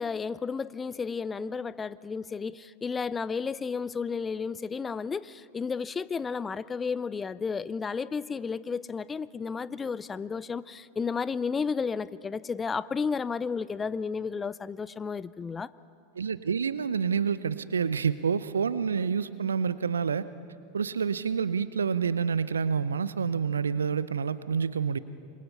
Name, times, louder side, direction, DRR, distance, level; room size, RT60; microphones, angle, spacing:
voice 1, 0.0-15.7, left 5 dB, 20° left, 19 dB, 0.5 m, -32 dB
voice 2, 16.1-20.3 20.7-25.0, right 6 dB, 75° right, 16 dB, 0.6 m, -28 dB
27.0 x 22.5 x 5.6 m, 2.5 s
figure-of-eight pair, 85°, 0 cm